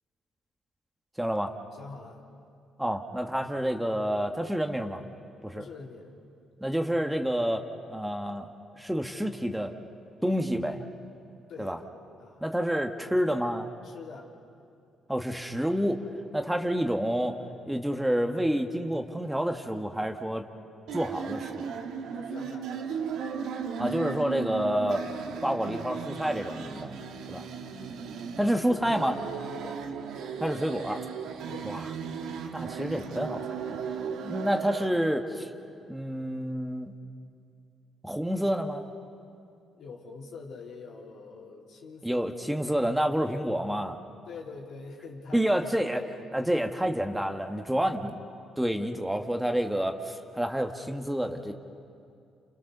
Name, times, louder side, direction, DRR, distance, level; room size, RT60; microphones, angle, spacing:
voice 1, 1.2-1.5 2.8-5.0 5.4-5.6 6.6-7.6 7.9-8.5 8.8-9.7 10.2-10.8 11.6-11.8 12.4-13.7 15.1-16.0 16.3-17.4 17.6-20.5 20.9-21.7 23.8-25.0 25.4-27.0 27.3-27.4 28.4-29.1 30.4-31.0 31.6-31.8 32.5-33.6 34.2-35.5 35.9-36.9 38.0-38.9 42.0-44.0 45.3-46.0 46.3-48.1 48.6-51.5, equal, 5° right, 5 dB, 1.5 m, -28 dB
voice 2, 1.7-2.2 5.5-6.2 11.5-11.8 12.2-12.4 13.8-14.3 16.6-16.7 22.0-23.3 28.5-29.0 29.5-29.9 31.5-31.8 39.8-42.3 44.3-45.9 47.8-48.0, left 4 dB, 75° left, -1 dB, 3.7 m, -45 dB
sound 1, 20.9-34.9, right 6 dB, 85° right, 1.7 m, -36 dB
29.5 x 29.0 x 6.8 m, 2.5 s
cardioid pair, 90°, 0 cm